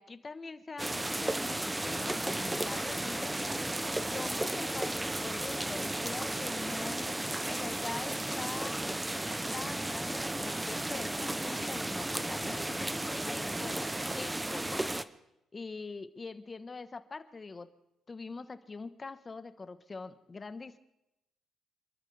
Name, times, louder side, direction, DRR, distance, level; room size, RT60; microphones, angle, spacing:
voice 1, 0.0-3.3 4.1-7.2 7.5-8.8 9.5-13.8 14.2-15.0 15.5-17.7 18.1-20.8, left 4 dB, 30° left, 11 dB, 1.2 m, -43 dB
sound 1, 0.8-15.0, right 1 dB, 10° right, 0.7 m, -34 dB
27.5 x 12.5 x 3.4 m, 0.88 s
cardioid pair, 90°, 0 cm